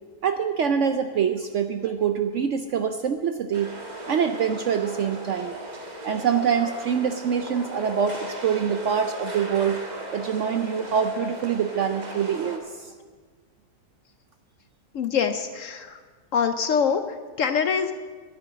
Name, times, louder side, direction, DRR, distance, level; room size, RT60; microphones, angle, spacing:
voice 1, 0.2-3.7 4.1-5.5 6.0-9.8 10.1-12.9, right 7 dB, 65° right, 8 dB, 0.7 m, -25 dB
sound 1, 3.5-12.6, right 1 dB, 30° right, 1.3 m, -37 dB
voice 2, 14.9-16.0 16.3-17.0 17.4-17.9, left 7 dB, 65° left, 9 dB, 0.8 m, -24 dB
10.5 x 9.4 x 8.2 m, 1.5 s
omnidirectional pair, 1.8 m